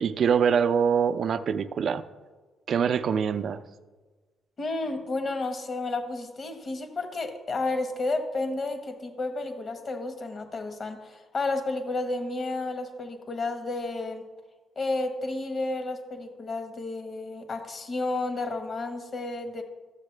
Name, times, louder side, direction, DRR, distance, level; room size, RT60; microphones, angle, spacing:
voice 1, 0.0-2.0 2.7-3.6, right 7 dB, 60° right, 11 dB, 0.4 m, -24 dB
voice 2, 4.6-14.3 14.8-19.6, left 2 dB, 45° left, 7 dB, 1.2 m, -31 dB
12.5 x 7.3 x 3.3 m, 1.3 s
cardioid pair, 90°, 0 cm